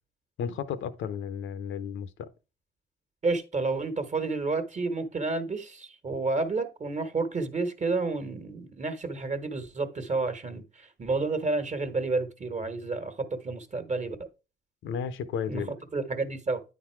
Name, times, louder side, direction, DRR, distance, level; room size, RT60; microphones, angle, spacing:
voice 1, 0.4-2.3 14.8-15.7, left 7 dB, 80° left, 0.8 m, -33 dB
voice 2, 3.2-14.3 15.5-16.6, right 3 dB, 35° right, 1.4 m, -30 dB
9.4 x 4.0 x 4.5 m
cardioid pair, 90°, 20 cm